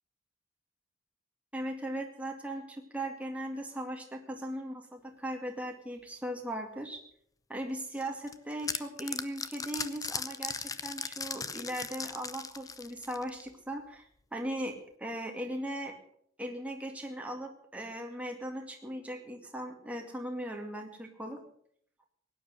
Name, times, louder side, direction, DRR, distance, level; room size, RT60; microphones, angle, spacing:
voice 1, 1.5-7.0 7.5-16.0 16.4-21.4, right 1 dB, 5° right, 2 dB, 2.1 m, -38 dB
sound 1, 8.0-13.5, left 5 dB, 15° left, 0.6 m, -38 dB
17.5 x 9.8 x 6.5 m, 0.65 s
head